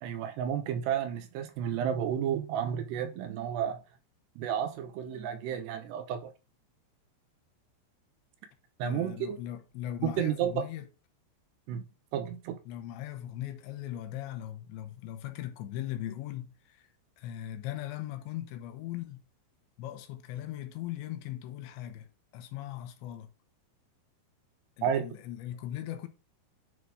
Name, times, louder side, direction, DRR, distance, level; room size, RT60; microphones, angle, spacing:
voice 1, 0.0-3.8 4.4-6.3 8.8-9.4 10.0-10.6 11.7-11.8 12.1-12.6 24.8-25.0, right 9 dB, 80° right, 2.8 m, -31 dB
voice 2, 8.8-10.9 12.7-16.9 17.2-19.2 19.8-23.3 24.8-26.1, left 12 dB, 80° left, 3.3 m, -39 dB
10.0 x 4.0 x 4.8 m
omnidirectional pair, 5.1 m